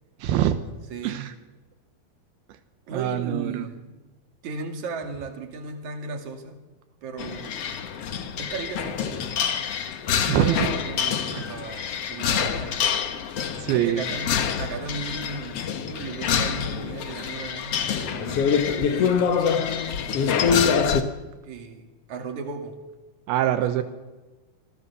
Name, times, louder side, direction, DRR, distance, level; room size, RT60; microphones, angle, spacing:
voice 1, 0.2-0.6 1.0-1.3 2.9-3.7 10.3-10.7 11.3-11.5 13.6-14.0 23.3-23.8, right 12 dB, 85° right, 9 dB, 2.9 m, -24 dB
voice 2, 0.9-1.2 2.9-4.0 4.4-6.6 7.0-7.7 8.4-9.5 10.4-12.8 13.7-19.4 21.4-22.8 23.6-23.8, right 4 dB, 50° right, 4 dB, 3.5 m, -36 dB
sound 1, 7.2-21.0, left 7 dB, 60° left, 1.6 m, -26 dB
26.0 x 16.5 x 7.0 m, 1.2 s
omnidirectional pair, 4.5 m